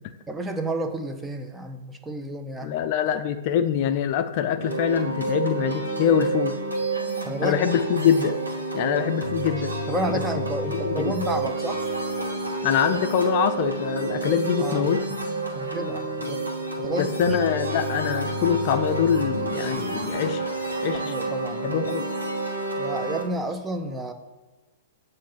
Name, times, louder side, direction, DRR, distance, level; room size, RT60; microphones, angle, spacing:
voice 1, 0.3-2.8 7.3-7.6 9.9-11.8 14.6-14.9 15.5-16.4 16.8-17.4 20.9-21.8 22.8-24.1, right 1 dB, 10° right, 6 dB, 0.6 m, -31 dB
voice 2, 2.6-6.6 7.4-8.4 8.7-9.7 10.8-11.1 12.6-15.0 16.9-20.4 20.8-21.1 21.6-22.1, left 8 dB, 45° left, 9 dB, 0.4 m, -24 dB
sound 1, 4.6-23.2, right 2 dB, 85° right, 1.1 m, -29 dB
7.2 x 2.7 x 5.6 m, 1.2 s
figure-of-eight pair, 110°, 0 cm